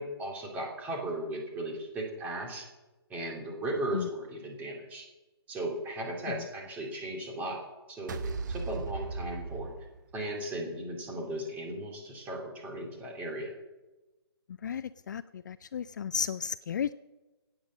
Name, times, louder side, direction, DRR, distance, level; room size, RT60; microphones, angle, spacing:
voice 1, 0.0-2.7 3.1-5.1 5.5-7.6 7.9-9.7 10.1-13.5, right 1 dB, 10° right, 0 dB, 2.5 m, -36 dB
sound 1, 8.1-10.4, right 4 dB, 45° right, 1.2 m, -37 dB
voice 2, 14.6-16.9, left 7 dB, 45° left, 15 dB, 0.4 m, -34 dB
16.0 x 9.1 x 6.1 m, 1.1 s
hypercardioid pair, 155°, 14 cm